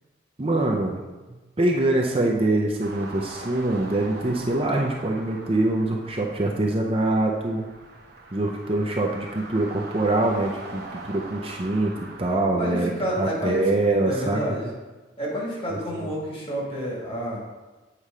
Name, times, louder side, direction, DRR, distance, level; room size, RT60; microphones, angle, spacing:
voice 1, 0.4-1.0 1.6-7.6 8.3-12.9 13.2-14.4 16.0-16.1, right 2 dB, 30° right, 0 dB, 0.6 m, -24 dB
sound 1, 2.8-12.4, right 2 dB, 50° right, 1.0 m, -42 dB
voice 2, 12.6-13.7 14.0-14.7 15.2-17.4, equal, 30° left, -3 dB, 1.8 m, -29 dB
8.2 x 4.3 x 5.0 m, 1.2 s
head